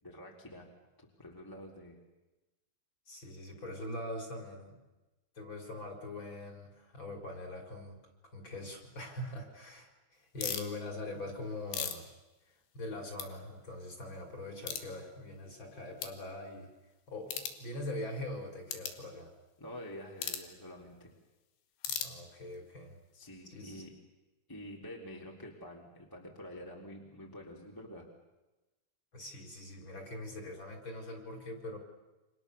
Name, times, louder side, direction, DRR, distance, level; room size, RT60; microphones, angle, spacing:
voice 1, 0.0-0.7 1.0-2.0 19.6-21.1 23.1-24.0 24.5-28.1, left 1 dB, 5° left, -1 dB, 2.9 m, -48 dB
voice 2, 3.1-4.8 5.3-8.0 8.3-12.1 12.5-16.7 17.1-19.3 21.9-23.0 23.5-23.8 29.1-31.8, left 1 dB, 30° left, 2 dB, 5.1 m, -42 dB
sound 1, 10.4-10.7 11.4-12.9 13.1-13.3 13.7-13.8 14.6-14.9 15.5-15.6 16.0-16.2 17.2-17.6 18.7-19.0 20.2-20.5 21.8-22.6, left 9 dB, 75° left, 4.0 m, -38 dB
29.5 x 26.5 x 7.0 m, 1.1 s
omnidirectional pair, 4.8 m